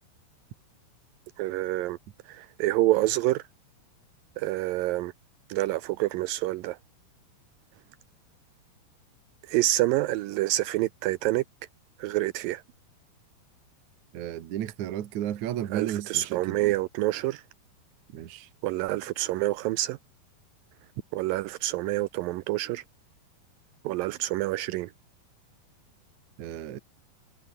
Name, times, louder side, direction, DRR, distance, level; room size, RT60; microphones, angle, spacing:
voice 1, 1.4-2.0 2.3-3.4 4.4-5.1 5.5-6.8 9.5-11.4 12.0-12.6 15.7-17.4 18.6-20.0 21.1-22.8 23.8-24.9, right 17 dB, 85° right, 2.0 m, -27 dB
voice 2, 14.1-16.7 18.1-18.5 26.4-26.8, right 11 dB, 55° right, 2.5 m, -33 dB
omnidirectional pair, 4.6 m